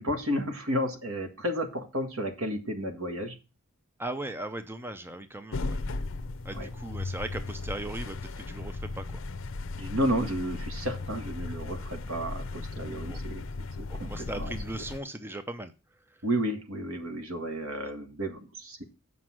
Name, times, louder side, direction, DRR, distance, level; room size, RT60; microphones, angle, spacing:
voice 1, 0.0-3.4 6.5-6.7 9.8-13.4 13.8-14.5 16.2-18.8, equal, 70° right, 6 dB, 1.7 m, -32 dB
voice 2, 4.0-5.8 6.4-9.2 13.1-13.2 13.9-15.7, right 1 dB, 10° right, 9 dB, 0.6 m, -38 dB
sound 1, 5.5-15.0, left 3 dB, 65° left, 0.6 m, -36 dB
7.6 x 5.3 x 6.1 m, 0.31 s
head